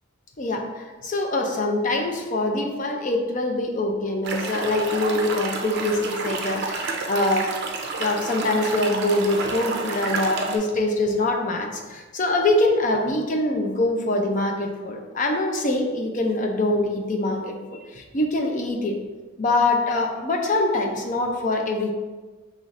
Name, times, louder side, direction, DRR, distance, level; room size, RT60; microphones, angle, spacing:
voice 1, 0.4-7.5 8.0-19.0 19.4-21.9, left 2 dB, 40° left, 3 dB, 0.5 m, -24 dB
sound 1, 4.2-10.6, right 3 dB, 50° right, 0.5 m, -30 dB
5.5 x 3.1 x 2.5 m, 1.3 s
head